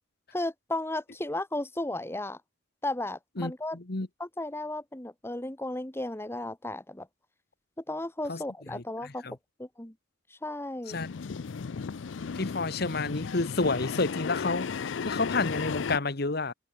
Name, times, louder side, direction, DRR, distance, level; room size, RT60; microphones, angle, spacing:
voice 1, 0.3-2.4 2.8-3.8 4.2-7.1 7.9-9.3 9.6-9.9 10.3-11.0, left 1 dB, 15° left, 1.2 m, -34 dB
voice 2, 3.4-4.1 8.3-8.4 8.7-9.3 10.9-11.1 12.3-16.5, left 3 dB, 55° left, 1.4 m, -30 dB
sound 1, 10.9-16.0, left 5 dB, 75° left, 0.5 m, -34 dB
head